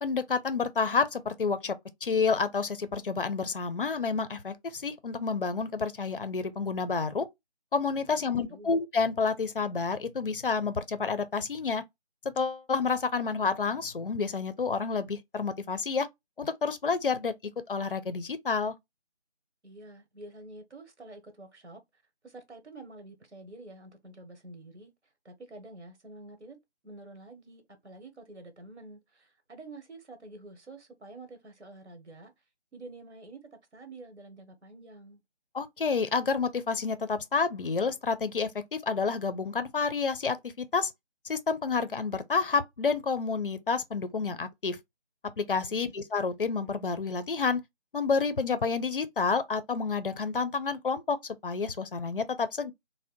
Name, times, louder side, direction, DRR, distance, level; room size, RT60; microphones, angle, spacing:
voice 1, 0.0-7.3 7.7-11.8 12.2-16.1 16.4-17.3 17.7-18.7 35.5-40.9 41.2-44.8 45.4-47.6 47.9-52.7, left 5 dB, 55° left, 0.5 m, -29 dB
voice 2, 8.2-8.7 19.6-24.9 25.2-32.3 32.7-35.2 45.7-45.9, right 2 dB, 80° right, 1.1 m, -48 dB
2.7 x 2.1 x 3.5 m
figure-of-eight pair, 165°, 34 cm